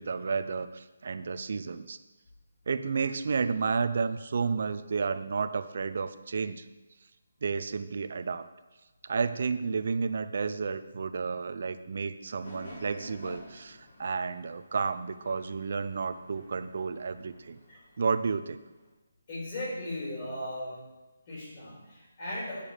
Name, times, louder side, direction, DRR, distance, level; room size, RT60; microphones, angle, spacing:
voice 1, 0.0-2.0 2.7-6.7 7.4-8.5 9.0-17.6 18.0-18.6, right 5 dB, 45° right, 11 dB, 0.6 m, -31 dB
sound 1, 12.4-18.9, left 1 dB, 50° left, 3.7 m, -51 dB
voice 2, 19.3-20.8 21.3-22.6, left 1 dB, 30° left, -5 dB, 3.8 m, -37 dB
9.0 x 6.7 x 6.7 m, 1.2 s
hypercardioid pair, 175°, 0 cm